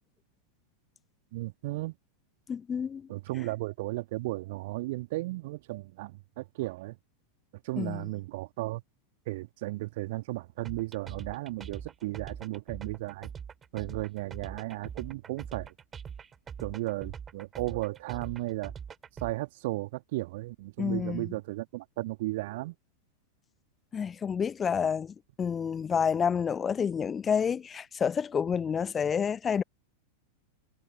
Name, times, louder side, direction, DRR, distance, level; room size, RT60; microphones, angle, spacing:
voice 1, 1.3-2.0 3.1-7.0 7.6-8.8 9.3-13.3 13.7-15.7 16.6-18.7 19.2-22.8, right 20 dB, 50° right, 2.5 m, -35 dB
voice 2, 2.5-3.1 7.8-8.0 20.8-21.3 23.9-29.6, left 7 dB, 20° left, 1.1 m, -29 dB
sound 1, 10.6-19.3, right 7 dB, 20° right, 3.9 m, -43 dB
figure-of-eight pair, 90°, 0 cm